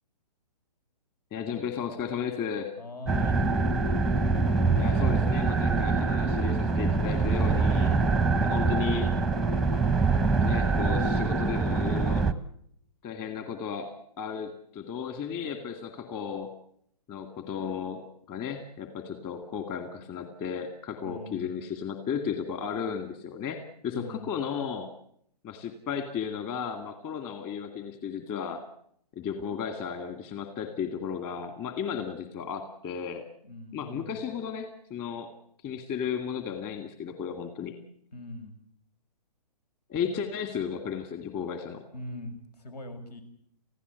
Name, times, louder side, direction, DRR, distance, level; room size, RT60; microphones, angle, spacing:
voice 1, 1.3-2.7 4.8-7.9 8.4-9.1 10.4-12.3 13.0-13.9 14.2-16.5 17.1-18.0 18.3-23.6 23.8-24.9 25.4-28.6 29.1-33.2 33.7-35.3 35.6-37.7 39.9-41.8, left 7 dB, 25° left, 7 dB, 2.2 m, -34 dB
voice 2, 2.8-3.4 21.0-21.7 23.9-24.5 33.4-34.2 38.1-38.6 41.9-43.2, left 1 dB, 70° left, 8 dB, 6.5 m, -42 dB
sound 1, 3.1-12.3, right 4 dB, ahead, 0.9 m, -24 dB
29.5 x 16.0 x 8.3 m, 0.69 s
hypercardioid pair, 145°, 21 cm